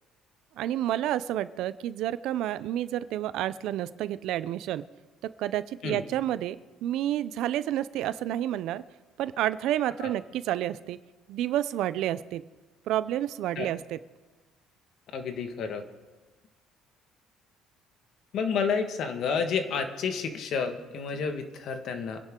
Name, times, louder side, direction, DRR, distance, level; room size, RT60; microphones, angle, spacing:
voice 1, 0.6-4.8 5.4-8.8 9.2-11.0 11.3-12.4 12.9-14.0, right 12 dB, 70° right, 15 dB, 0.5 m, -30 dB
voice 2, 15.1-15.8 18.3-22.2, left 5 dB, 55° left, 6 dB, 1.6 m, -30 dB
25.5 x 11.0 x 3.8 m, 1.3 s
cardioid pair, 140°, 0 cm